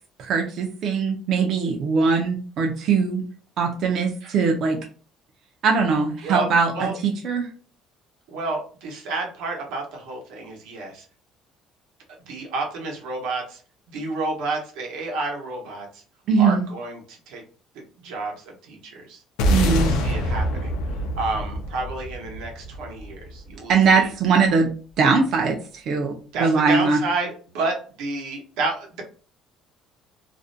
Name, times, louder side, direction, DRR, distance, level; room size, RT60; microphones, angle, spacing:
voice 1, 0.2-3.2 3.6-4.8 5.6-7.5 16.3-16.6 19.5-19.9 23.7-24.7 25.0-26.1 26.4-27.0, right 5 dB, 45° right, 1 dB, 0.4 m, -21 dB
voice 2, 6.2-7.0 8.3-11.0 12.3-13.6 13.9-16.0 16.4-17.4 18.0-19.2 19.6-20.8 21.2-24.1 26.3-29.0, right 3 dB, 85° right, 1 dB, 0.8 m, -30 dB
sound 1, 19.4-23.8, equal, 85° left, 0.4 m, -25 dB
2.4 x 2.1 x 2.5 m, 0.39 s
cardioid pair, 175°, 0 cm